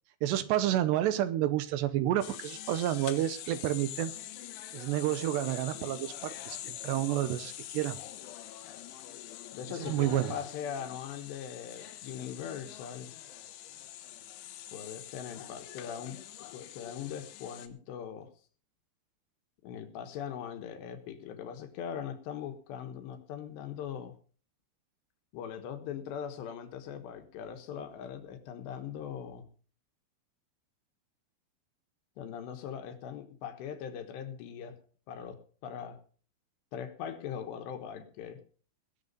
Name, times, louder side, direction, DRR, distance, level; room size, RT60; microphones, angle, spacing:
voice 1, 0.2-4.1 4.7-8.0 9.8-10.3, right 13 dB, 80° right, 13 dB, 2.8 m, -30 dB
sound 1, 2.2-17.7, left 13 dB, 90° left, 3.6 m, -45 dB
voice 2, 9.5-13.1 14.7-16.2 16.5-18.3 19.6-24.1 25.3-29.5 32.2-34.8 35.1-36.0 36.7-38.4, left 8 dB, 75° left, 9 dB, 3.4 m, -40 dB
19.5 x 7.9 x 5.3 m, 0.42 s
omnidirectional pair, 5.3 m